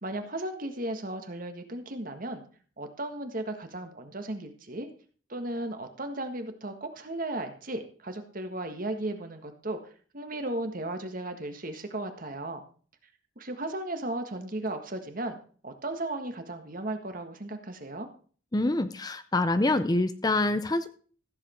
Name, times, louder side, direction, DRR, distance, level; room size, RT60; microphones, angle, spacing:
voice 1, 0.0-2.4 2.8-4.9 5.3-12.6 13.4-15.4 15.6-18.1, right 1 dB, 45° right, 6 dB, 1.6 m, -35 dB
voice 2, 18.5-20.9, left 2 dB, 20° left, 11 dB, 0.6 m, -26 dB
15.0 x 7.8 x 4.4 m, 0.42 s
head